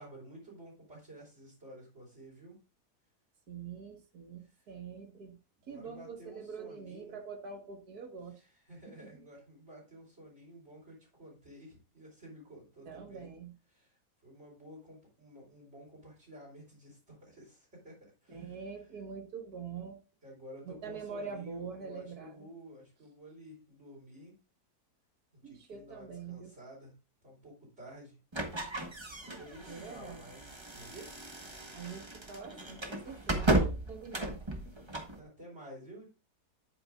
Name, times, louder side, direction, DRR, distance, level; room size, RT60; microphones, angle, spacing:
voice 1, 0.0-2.6 5.7-7.2 8.4-13.3 13.7-13.9 14.2-18.6 20.2-24.4 25.4-26.9 27.2-28.2 29.4-31.2 35.1-36.1, right 1 dB, 45° right, 4.8 m, -52 dB
voice 2, 3.5-5.4 5.6-8.4 8.9-9.2 12.9-13.5 18.3-20.0 20.7-22.5 25.4-26.5 29.7-30.2 31.7-34.9, right 5 dB, 70° right, 2.0 m, -45 dB
sound 1, 28.3-35.2, right 2 dB, 20° right, 1.2 m, -35 dB
10.5 x 8.8 x 2.5 m
omnidirectional pair, 1.7 m